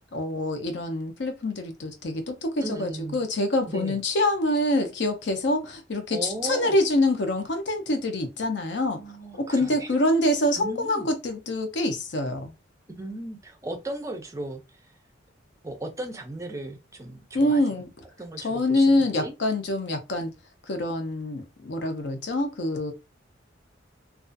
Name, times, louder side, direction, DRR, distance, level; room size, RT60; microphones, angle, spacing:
voice 1, 0.1-9.0 9.4-12.5 17.3-17.9 18.4-20.3 20.7-22.9, left 1 dB, 65° left, 0.6 m, -25 dB
voice 2, 2.6-3.2 3.6-4.0 6.1-6.8 9.0-9.9 10.6-11.1 12.9-14.9 15.6-17.9 18.2-19.3, right 1 dB, 15° right, 0.4 m, -37 dB
2.4 x 2.3 x 2.5 m
head